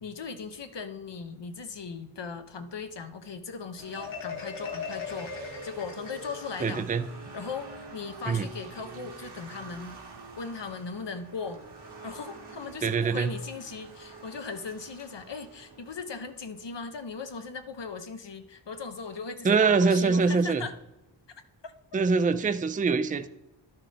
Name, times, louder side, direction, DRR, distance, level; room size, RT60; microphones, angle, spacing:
voice 1, 0.0-6.9 7.3-10.0 10.4-11.6 12.0-20.7 21.6-21.7, left 5 dB, 60° left, 8 dB, 0.9 m, -38 dB
sound 1, 3.8-16.8, right 3 dB, 55° right, 1.4 m, -47 dB
Marimba xylophone, 3.9-6.7, left 5 dB, 80° left, 1.7 m, -38 dB
voice 2, 6.6-7.0 8.3-8.5 12.8-13.3 19.4-20.6 21.9-23.3, right 4 dB, 20° right, 12 dB, 0.4 m, -24 dB
12.5 x 5.9 x 3.4 m, 0.97 s
wide cardioid pair, 80°, 48 cm